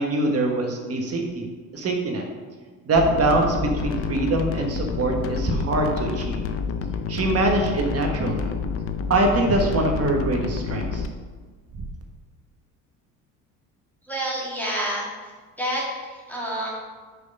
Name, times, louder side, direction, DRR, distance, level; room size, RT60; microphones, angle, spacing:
voice 1, 0.0-1.4 1.7-2.2 2.9-6.5 7.1-8.5 9.1-11.1, right 2 dB, 40° right, 2 dB, 1.3 m, -23 dB
sound 1, 3.0-11.1, left 6 dB, 35° left, 0.6 m, -28 dB
voice 2, 14.1-15.3 15.6-16.7, right 1 dB, 5° left, -6 dB, 1.9 m, -28 dB
4.9 x 4.8 x 5.4 m, 1.4 s
supercardioid pair, 80°, 37 cm